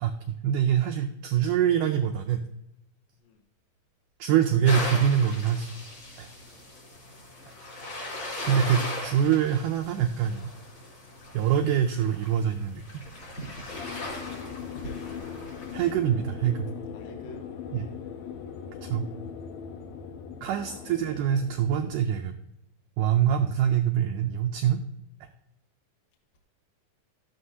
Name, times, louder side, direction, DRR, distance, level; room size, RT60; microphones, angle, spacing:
voice 1, 0.0-2.4 4.2-5.7 6.2-6.3 8.4-10.5 11.3-12.8 15.7-16.7 17.7-17.9 18.8-19.1 20.4-22.3 23.0-24.8, right 9 dB, 80° right, 5 dB, 1.9 m, -24 dB
sound 1, 4.6-15.9, left 1 dB, 35° left, 4.1 m, -38 dB
sound 2, 13.7-22.1, left 7 dB, 80° left, 2.6 m, -40 dB
voice 2, 14.6-15.2 16.9-17.5 20.6-21.2, left 2 dB, 60° left, 1 dB, 2.2 m, -47 dB
13.5 x 11.0 x 2.8 m, 0.85 s
omnidirectional pair, 4.3 m